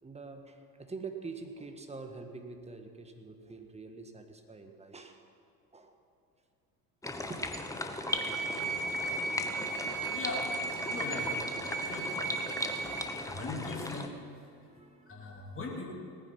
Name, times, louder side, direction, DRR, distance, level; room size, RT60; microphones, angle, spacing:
voice 1, 0.0-5.2 5.7-5.9 7.3-7.5 10.0-10.2 12.8-13.1 14.7-15.2, right 4 dB, 15° right, 6 dB, 1.6 m, -45 dB
sound 1, 7.0-14.1, left 2 dB, 5° left, 1.1 m, -38 dB
sound 2, 8.1-13.1, right 3 dB, 40° right, 1.7 m, -35 dB
voice 2, 9.4-9.8 10.1-10.4 10.8-11.4 11.8-12.3 12.8-12.9 13.3-14.2 14.5-14.7 15.0-15.9, left 3 dB, 25° left, -2 dB, 2.9 m, -40 dB
18.5 x 9.7 x 5.5 m, 2.6 s
hypercardioid pair, 70°, 48 cm